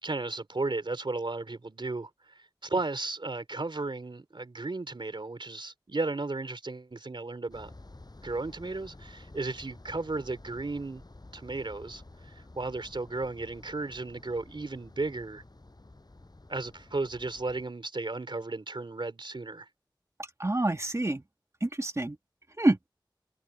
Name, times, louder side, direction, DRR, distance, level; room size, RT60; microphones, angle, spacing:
voice 1, 0.0-7.7 8.2-11.0 11.3-15.4 16.5-19.7, right 3 dB, 85° right, 3.8 m, -34 dB
sound 1, 7.5-17.7, left 2 dB, 55° left, 7.3 m, -51 dB
voice 2, 20.4-21.2 21.6-22.2 22.6-22.9, right 2 dB, 35° right, 1.4 m, -27 dB
wide cardioid pair, 40°, 8 cm